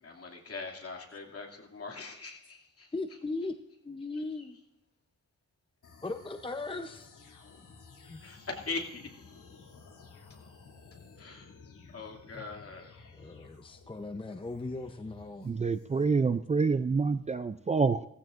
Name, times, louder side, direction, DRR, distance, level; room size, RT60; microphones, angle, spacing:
voice 1, 0.0-2.9 8.2-9.1 11.2-11.5 11.9-12.9, left 3 dB, 50° left, 1 dB, 2.6 m, -41 dB
voice 2, 2.9-3.6 3.8-4.6 6.0-7.1 8.1-8.2 12.3-12.5 13.1-15.5, left 3 dB, 15° left, 6 dB, 0.7 m, -38 dB
sound 1, 5.8-16.0, left 4 dB, 80° left, 2.8 m, -54 dB
voice 3, 15.4-18.1, right 4 dB, 25° right, 11 dB, 0.4 m, -27 dB
17.0 x 15.0 x 2.5 m, 0.86 s
wide cardioid pair, 120°, 31 cm